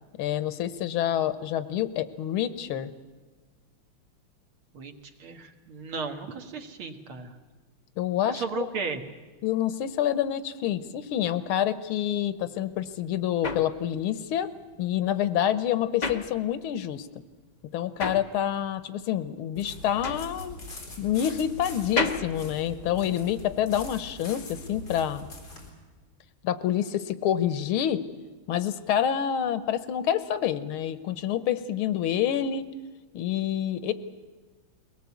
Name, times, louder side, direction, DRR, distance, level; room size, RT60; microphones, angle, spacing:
voice 1, 0.2-2.9 8.0-8.7 9.4-14.5 14.8-17.1 17.7-20.6 21.0-25.3 26.4-28.0 28.5-32.7 33.1-33.9, left 10 dB, 90° left, 14 dB, 1.8 m, -27 dB
voice 2, 5.2-7.3 8.3-9.0, right 5 dB, 85° right, 5 dB, 2.4 m, -35 dB
sound 1, 12.7-17.0 17.3-23.5, left 4 dB, 30° left, 0.8 m, -35 dB
sound 2, 19.5-25.7, left 2 dB, 50° left, 4.4 m, -42 dB
22.0 x 18.5 x 8.3 m, 1.3 s
omnidirectional pair, 2.3 m